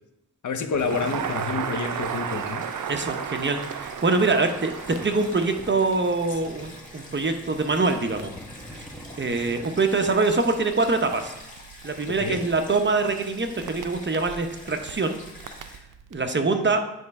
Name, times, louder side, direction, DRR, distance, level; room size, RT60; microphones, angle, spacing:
voice 1, 0.4-2.6 6.3-6.4 12.1-12.4, left 5 dB, 70° left, 6 dB, 0.8 m, -29 dB
Crackle, 0.7-16.2, right 8 dB, 85° right, 0.5 m, -37 dB
Stream, 0.8-15.8, left 1 dB, 25° left, 1.7 m, -46 dB
sound 1, 1.9-9.7, equal, 5° left, 1.0 m, -47 dB
voice 2, 2.9-8.3 8.8-8.9 9.2-11.3 11.8-15.2 16.1-16.8, right 3 dB, 35° right, 6 dB, 0.8 m, -24 dB
9.2 x 3.2 x 4.7 m, 0.88 s
wide cardioid pair, 80°, 31 cm